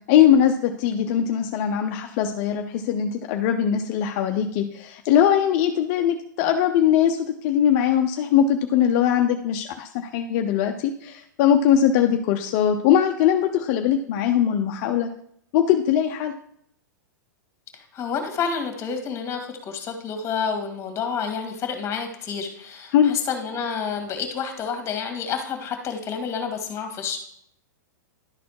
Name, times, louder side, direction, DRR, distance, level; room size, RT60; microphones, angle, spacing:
voice 1, 0.1-15.1 15.5-16.3 22.9-23.1, left 9 dB, 50° left, 6 dB, 0.6 m, -21 dB
voice 2, 17.7-27.2, left 6 dB, 25° left, 5 dB, 1.9 m, -29 dB
11.0 x 4.1 x 4.7 m, 0.69 s
hypercardioid pair, 110°, 10 cm